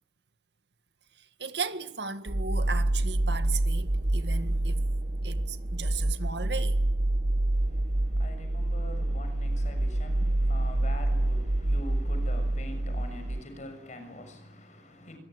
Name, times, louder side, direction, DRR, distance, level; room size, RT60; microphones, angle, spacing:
voice 1, 1.4-4.8 5.2-6.8, right 5 dB, 70° right, 1.9 m, -36 dB
sound 1, 2.3-13.4, right 1 dB, 45° right, 1.0 m, -27 dB
voice 2, 7.5-15.2, left 1 dB, 40° left, 6.7 m, -44 dB
26.0 x 21.5 x 9.9 m
head